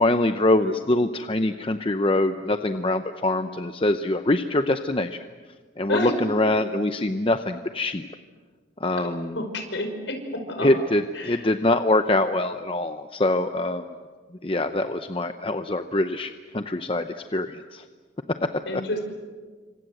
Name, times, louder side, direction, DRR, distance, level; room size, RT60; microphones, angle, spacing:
voice 1, 0.0-5.2 5.8-8.1 8.8-9.4 10.6-13.9 14.4-17.8 18.7-18.8, left 2 dB, 25° left, 8 dB, 0.8 m, -24 dB
voice 2, 9.4-10.8 11.1-11.4 18.7-19.0, left 1 dB, 65° left, 5 dB, 5.4 m, -30 dB
29.5 x 26.0 x 7.9 m, 1.5 s
head